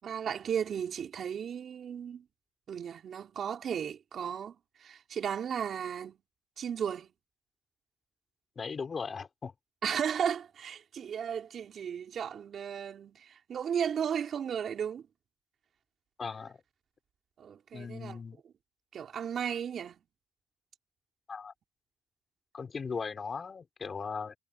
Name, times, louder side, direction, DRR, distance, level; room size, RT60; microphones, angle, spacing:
voice 1, 0.0-2.2 2.7-6.2 6.6-7.1 9.8-15.0 17.4-18.2 18.9-20.0, right 8 dB, 60° right, 4.3 m, -35 dB
voice 2, 8.5-9.5 16.2-16.6 17.7-18.4 21.3-21.5 22.5-24.4, left 5 dB, 40° left, 5.1 m, -38 dB
cardioid pair, 90°, 0 cm